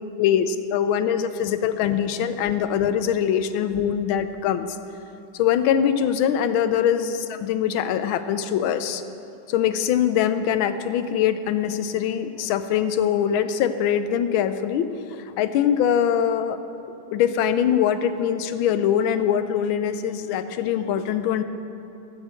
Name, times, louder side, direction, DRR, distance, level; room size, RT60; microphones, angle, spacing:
voice 1, 0.2-4.7 5.4-9.0 9.5-14.9 15.4-16.6 17.1-21.4, left 9 dB, 90° left, 11 dB, 1.4 m, -23 dB
14.5 x 5.1 x 7.5 m, 2.8 s
omnidirectional pair, 2.2 m